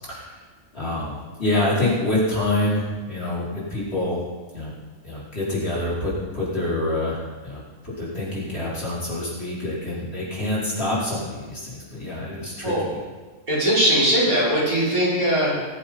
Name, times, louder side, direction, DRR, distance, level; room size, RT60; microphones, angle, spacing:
voice 1, 0.7-4.2 4.5-4.7 5.0-7.6 8.0-13.0, left 1 dB, 45° left, -8 dB, 5.0 m, -26 dB
voice 2, 13.5-15.6, equal, 85° right, -8 dB, 6.2 m, -20 dB
20.5 x 7.8 x 5.6 m, 1.3 s
omnidirectional pair, 1.5 m